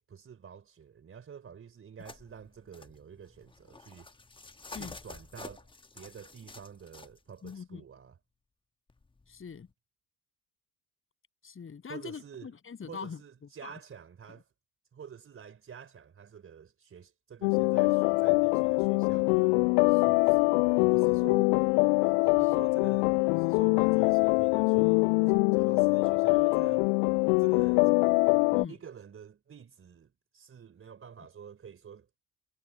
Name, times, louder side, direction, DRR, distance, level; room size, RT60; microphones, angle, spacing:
voice 1, 0.0-4.1 4.7-5.7 5.9-8.2 11.9-12.5 12.9-14.5 14.9-19.6 19.9-21.6 22.2-26.9 27.4-27.9 28.7-32.1, right 7 dB, 25° right, 4.1 m, -48 dB
sound 1, 2.0-7.6 8.9-9.7, left 3 dB, 10° left, 1.5 m, -50 dB
voice 2, 7.4-7.8 9.3-9.7 11.4-13.2 13.6-13.7 28.5-28.7, left 6 dB, 25° left, 7.9 m, -42 dB
sound 2, 17.4-28.6, left 40 dB or more, 45° left, 0.6 m, -24 dB
figure-of-eight pair, 65°, 47 cm